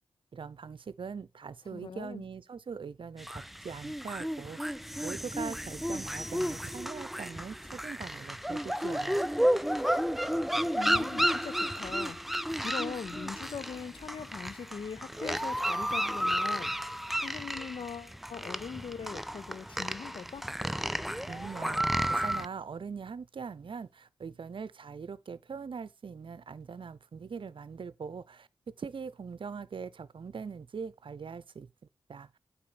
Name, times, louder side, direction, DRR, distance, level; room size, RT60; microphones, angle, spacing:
voice 1, 0.3-9.2 21.3-28.5 28.8-31.7 32.1-32.3, right 5 dB, 60° right, 0.7 m, -42 dB
voice 2, 1.7-2.2 10.8-12.2 12.6-20.5, left 6 dB, 60° left, 0.5 m, -41 dB
sound 1, 3.2-22.5, equal, ahead, 0.4 m, -32 dB
8.5 x 4.9 x 5.0 m
cardioid pair, 50°, 10 cm